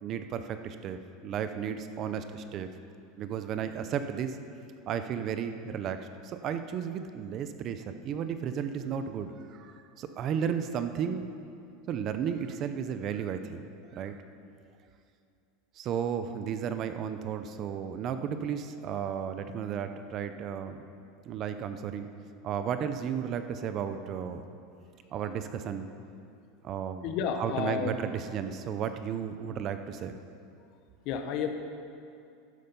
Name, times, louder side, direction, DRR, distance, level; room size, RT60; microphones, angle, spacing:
voice 1, 0.0-2.7 3.2-4.4 4.9-11.2 11.9-13.7 13.9-14.2 15.8-20.8 21.2-22.1 22.4-24.4 25.1-25.9 26.6-27.1 27.4-30.1, right 8 dB, 30° right, 9 dB, 0.5 m, -34 dB
voice 2, 27.0-27.9 31.0-31.5, left 7 dB, 45° left, 6 dB, 1.0 m, -31 dB
12.5 x 9.9 x 5.4 m, 2.5 s
supercardioid pair, 165°, 0 cm